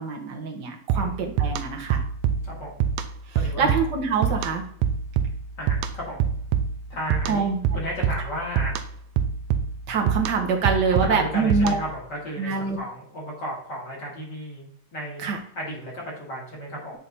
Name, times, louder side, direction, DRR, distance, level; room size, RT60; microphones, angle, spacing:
voice 1, 0.0-2.0 3.6-4.6 7.3-7.6 9.9-11.7 12.4-12.8 15.2-15.4, right 5 dB, 50° right, 2 dB, 1.3 m, -25 dB
voice 2, 0.9-1.7 2.4-2.7 3.3-3.7 5.6-6.2 6.9-8.8 10.9-15.3 15.6-17.0, equal, 40° left, -4 dB, 2.5 m, -34 dB
sound 1, 0.9-12.0, right 7 dB, 80° right, 1.9 m, -27 dB
8.5 x 3.9 x 4.2 m, 0.62 s
omnidirectional pair, 3.3 m